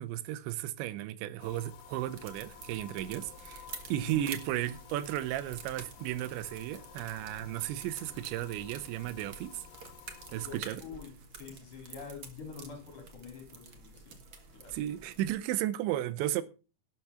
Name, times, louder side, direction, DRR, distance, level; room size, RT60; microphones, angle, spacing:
voice 1, 0.0-9.7 10.3-10.8 14.7-16.4, right 13 dB, 85° right, 3.1 m, -34 dB
sound 1, 1.4-10.6, left 10 dB, 75° left, 3.2 m, -53 dB
sound 2, 2.1-15.4, right 4 dB, 70° right, 1.1 m, -49 dB
voice 2, 4.0-4.3 10.4-14.1 14.5-14.8, left 6 dB, 45° left, 5.1 m, -47 dB
12.0 x 7.4 x 5.6 m
omnidirectional pair, 5.1 m